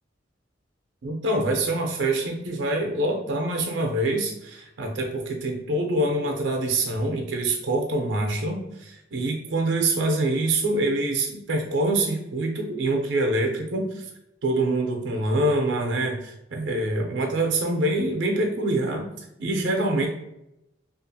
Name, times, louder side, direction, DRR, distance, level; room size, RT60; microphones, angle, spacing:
voice 1, 1.0-14.1 14.4-19.1 19.4-20.1, right 2 dB, 75° right, 2 dB, 0.5 m, -25 dB
2.8 x 2.4 x 2.7 m, 0.86 s
head